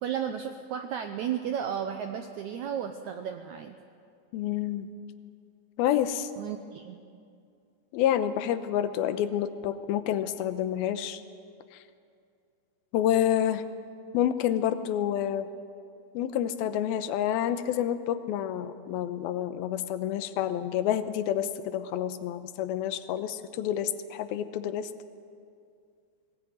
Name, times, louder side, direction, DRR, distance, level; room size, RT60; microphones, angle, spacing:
voice 1, 0.0-3.8 6.4-7.0, right 8 dB, 75° right, 6 dB, 1.8 m, -33 dB
voice 2, 4.3-4.9 5.8-6.3 7.9-11.2 12.9-13.6 14.1-15.5 16.1-24.9, left 10 dB, 85° left, 11 dB, 2.7 m, -28 dB
20.0 x 19.0 x 9.3 m, 2.4 s
omnidirectional pair, 4.4 m